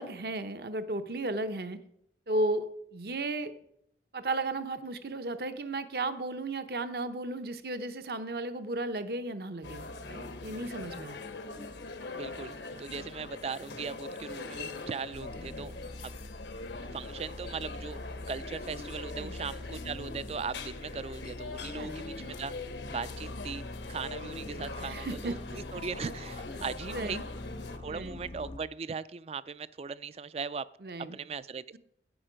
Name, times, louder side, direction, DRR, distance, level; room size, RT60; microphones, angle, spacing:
voice 1, 0.0-1.8 2.3-2.7 2.9-3.5 4.1-11.2 19.1-19.3 21.8-22.0 24.8-25.3 26.9-27.2 27.8-28.2 30.8-31.2, right 2 dB, 60° right, 10 dB, 0.8 m, -34 dB
sound 1, 9.6-27.8, left 3 dB, 85° left, 1.1 m, -42 dB
voice 2, 12.1-15.7 16.0-16.1 16.9-18.0 18.3-22.5 22.9-27.2 27.8-30.7 31.1-31.8, right 5 dB, 35° right, 17 dB, 0.3 m, -39 dB
sound 2, 15.1-28.6, left 2 dB, 30° left, 0.4 m, -44 dB
9.9 x 9.0 x 5.1 m, 0.72 s
head